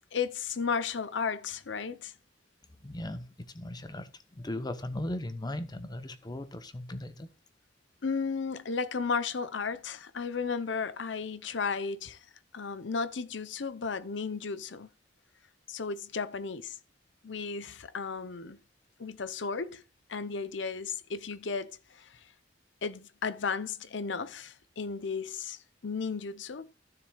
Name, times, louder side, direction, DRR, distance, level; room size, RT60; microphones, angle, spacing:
voice 1, 0.1-2.1 8.0-12.3 12.5-14.9 15.7-16.8 17.2-18.6 19.0-19.8 20.1-22.3 22.8-26.7, left 5 dB, 70° left, 0.7 m, -34 dB
voice 2, 2.8-7.3, left 1 dB, 20° left, 0.9 m, -38 dB
15.5 x 6.8 x 2.4 m
head